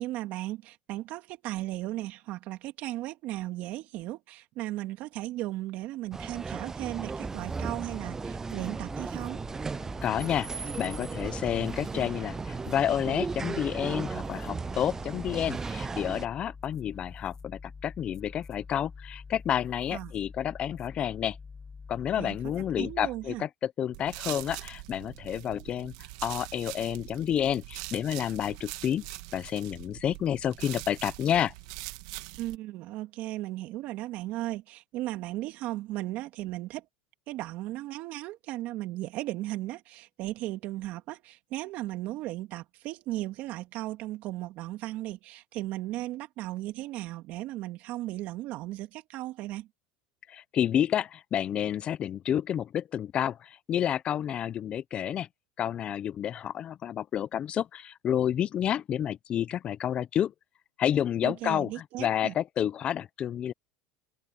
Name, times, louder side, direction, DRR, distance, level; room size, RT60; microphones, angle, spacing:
voice 1, 0.0-9.4 19.9-20.1 22.2-23.5 32.4-36.9 37.3-49.7 61.2-62.3, right 16 dB, 55° right, 2.8 m, -36 dB
sound 1, 6.1-16.2, right 4 dB, 15° right, 0.3 m, -36 dB
sound 2, 6.9-23.5, left 5 dB, 20° left, 2.4 m, -47 dB
voice 2, 10.0-21.4 21.9-25.9 26.2-29.0 29.3-31.5 50.3-55.3 55.6-60.3 60.8-63.5, left 10 dB, 35° left, 0.7 m, -30 dB
sound 3, 23.9-32.6, right 21 dB, 70° right, 2.0 m, -42 dB
supercardioid pair, 120°, 3 cm